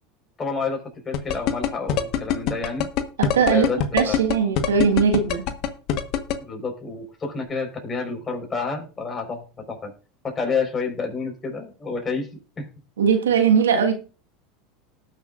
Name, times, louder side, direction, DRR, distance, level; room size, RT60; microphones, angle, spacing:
voice 1, 0.4-2.9 3.5-4.2 6.4-9.9 10.2-12.3 12.6-12.7, left 4 dB, 25° left, 4.5 m, -29 dB
sound 1, 1.1-6.3, left 10 dB, 55° left, 1.3 m, -22 dB
voice 2, 3.2-3.7 3.9-5.5 13.0-13.9, right 6 dB, 90° right, 1.6 m, -19 dB
19.0 x 6.6 x 2.5 m
hypercardioid pair, 90°, 0 cm